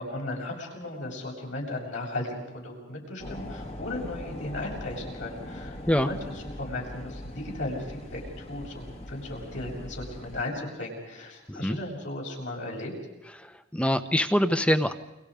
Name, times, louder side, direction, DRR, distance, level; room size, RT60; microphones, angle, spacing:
voice 1, 0.0-12.9, left 2 dB, 70° left, -1 dB, 7.4 m, -36 dB
sound 1, 3.2-10.4, left 1 dB, 35° left, 1.8 m, -41 dB
voice 2, 13.4-14.9, equal, 5° left, 9 dB, 1.1 m, -24 dB
29.5 x 25.0 x 5.1 m, 0.98 s
head